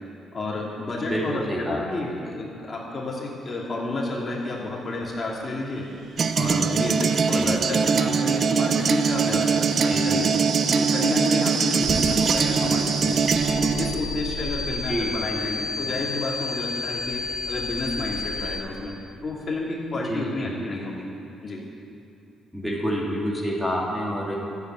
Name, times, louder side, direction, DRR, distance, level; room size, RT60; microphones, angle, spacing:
voice 1, 0.3-5.8 6.3-10.3 10.7-13.2 13.6-17.2 17.5-18.9 19.2-21.0 21.4-21.6, left 2 dB, 35° left, -4 dB, 2.7 m, -30 dB
voice 2, 1.1-1.8 7.3-7.6 9.9-10.2 14.9-15.1 20.1-20.5 22.5-24.4, equal, 5° right, -4 dB, 3.0 m, -28 dB
sound 1, 5.0-5.1 6.0-13.5, right 5 dB, 70° right, 1.2 m, -33 dB
sound 2, 6.2-13.9, right 5 dB, 50° right, 0.6 m, -22 dB
sound 3, 11.8-18.6, left 3 dB, 15° left, 2.4 m, -32 dB
13.0 x 8.5 x 9.2 m, 2.6 s
cardioid pair, 90°, 0 cm